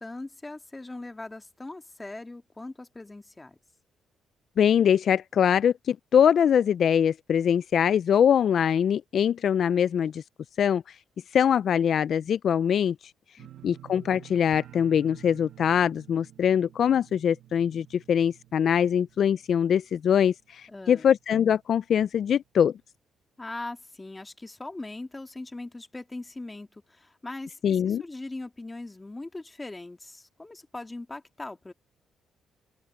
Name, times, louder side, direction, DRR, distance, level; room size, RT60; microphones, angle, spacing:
voice 1, 0.0-3.6 13.4-13.5 20.7-21.1 23.4-31.7, left 2 dB, 15° left, 2.0 m, -40 dB
voice 2, 4.6-10.2 10.6-11.0 11.3-13.0 13.6-22.7 27.6-28.0, left 8 dB, 60° left, 0.3 m, -23 dB
sound 1, 13.4-20.3 20.6-21.1 21.5-21.6, right 12 dB, 70° right, 1.5 m, -50 dB
open air
cardioid pair, 90°, 0 cm